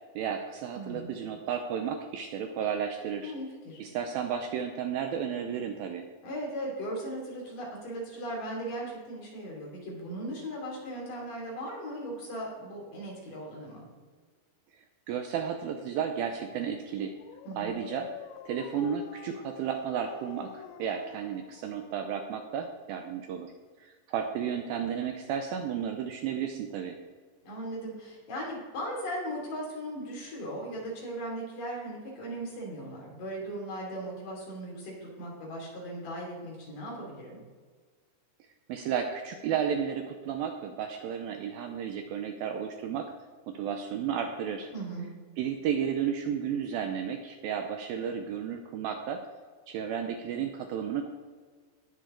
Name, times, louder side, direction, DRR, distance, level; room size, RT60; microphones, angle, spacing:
voice 1, 0.2-3.3 3.8-6.0 15.1-17.1 17.6-18.1 18.5-23.5 23.8-27.0 38.7-43.1 43.5-44.7 45.4-49.2 49.7-51.1, right 8 dB, 80° right, 5 dB, 2.2 m, -33 dB
voice 2, 0.7-1.1 3.2-3.8 6.2-13.8 17.4-17.8 27.4-37.4 44.7-45.1, right 1 dB, 55° left, -3 dB, 4.4 m, -38 dB
Dog, 16.9-22.6, left 12 dB, 85° left, 2.2 m, -47 dB
19.0 x 6.7 x 3.8 m, 1.5 s
omnidirectional pair, 4.7 m